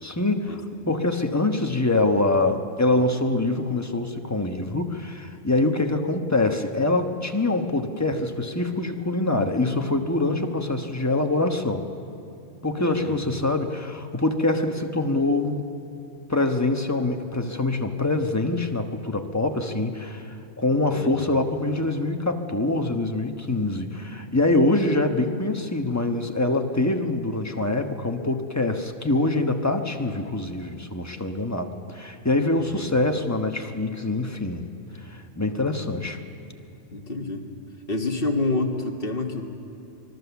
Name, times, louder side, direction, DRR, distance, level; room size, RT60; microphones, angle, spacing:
voice 1, 0.0-11.9 12.6-15.6 16.3-34.6 35.0-36.2, left 2 dB, 15° left, 4 dB, 1.1 m, -24 dB
voice 2, 12.8-13.2 20.9-21.3 32.5-32.8 36.9-37.4 37.9-39.4, left 2 dB, 45° left, 3 dB, 1.9 m, -28 dB
24.5 x 19.5 x 7.1 m, 2.7 s
omnidirectional pair, 1.3 m